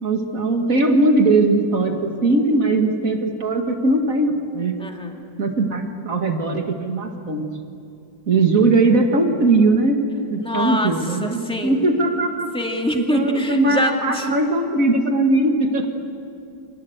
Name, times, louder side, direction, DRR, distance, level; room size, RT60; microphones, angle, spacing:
voice 1, 0.0-4.8 5.4-7.5 8.3-10.0 10.3-12.5 12.9-15.9, right 2 dB, 45° right, 4 dB, 2.3 m, -19 dB
voice 2, 4.8-5.2 10.4-10.9 11.2-11.8 12.5-14.3, left 1 dB, 5° left, 2 dB, 2.2 m, -25 dB
29.5 x 23.5 x 8.0 m, 2.6 s
omnidirectional pair, 2.0 m